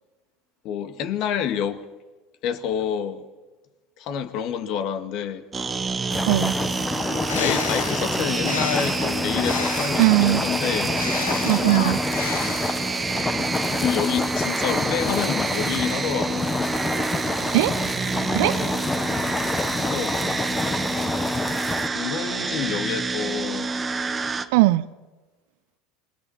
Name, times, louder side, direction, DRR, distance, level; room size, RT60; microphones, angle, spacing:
voice 1, 0.6-1.8 2.4-3.3 4.0-5.4 7.2-11.0 13.7-16.5 19.9-20.2 21.9-23.7, left 8 dB, 55° left, 2.1 m, -28 dB
sound 1, 5.5-24.5, right 4 dB, 20° right, 1.7 m, -28 dB
sound 2, 6.1-21.9, left 3 dB, 20° left, 1.4 m, -28 dB
voice 2, 6.3-6.6 10.0-10.4 11.4-12.0 17.5-17.7 18.3-18.5 24.5-24.9, right 19 dB, 65° right, 0.9 m, -19 dB
Bird, 7.0-10.1 10.8-13.0, left 7 dB, 80° left, 1.5 m, -33 dB
27.5 x 22.0 x 4.4 m
hypercardioid pair, 80°, 0 cm